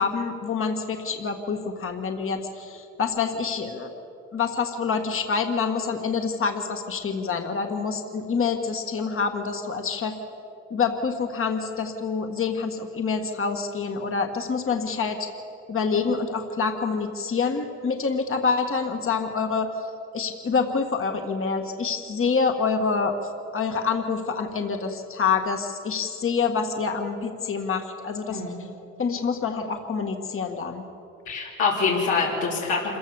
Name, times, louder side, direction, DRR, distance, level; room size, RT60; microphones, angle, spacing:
voice 1, 0.0-4.0 4.3-10.2 10.7-15.2 15.7-19.7 20.1-28.4 29.0-30.8, left 5 dB, 45° left, 5 dB, 1.7 m, -26 dB
voice 2, 28.3-28.6 31.3-33.0, left 4 dB, 90° left, -5 dB, 3.5 m, -25 dB
26.5 x 15.0 x 7.1 m, 2.7 s
cardioid pair, 90°, 30 cm